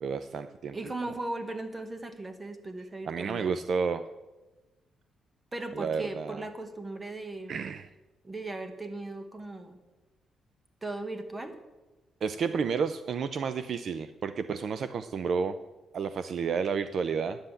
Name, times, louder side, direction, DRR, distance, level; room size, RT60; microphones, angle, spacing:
voice 1, 0.0-0.8 3.1-4.0 5.7-6.4 7.5-7.9 12.2-15.6 15.9-17.4, right 6 dB, 50° right, 11 dB, 0.5 m, -31 dB
voice 2, 0.7-3.5 5.5-7.6 8.2-9.8 10.8-11.6, right 2 dB, 15° right, 8 dB, 1.1 m, -37 dB
10.5 x 7.7 x 8.2 m, 1.1 s
cardioid pair, 160°, 0 cm